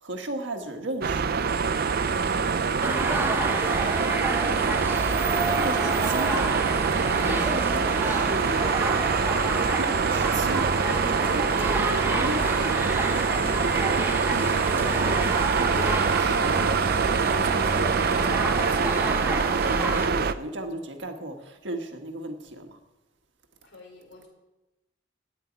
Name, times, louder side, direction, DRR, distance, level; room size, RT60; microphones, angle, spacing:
voice 1, 0.0-1.5 4.8-5.0 5.6-6.6 7.1-8.7 9.7-10.7 11.0-16.9 17.2-22.8, right 1 dB, 70° right, 4 dB, 1.7 m, -35 dB
sound 1, 1.0-20.3, right 5 dB, 55° right, 0.5 m, -25 dB
sound 2, 1.5-19.1, left 4 dB, 35° left, 2.2 m, -45 dB
sound 3, 2.8-20.1, right 1 dB, 10° right, 1.0 m, -30 dB
voice 2, 4.0-4.4 23.6-24.3, left 3 dB, 85° left, 1 dB, 4.8 m, -49 dB
9.6 x 9.3 x 9.6 m, 1.0 s
head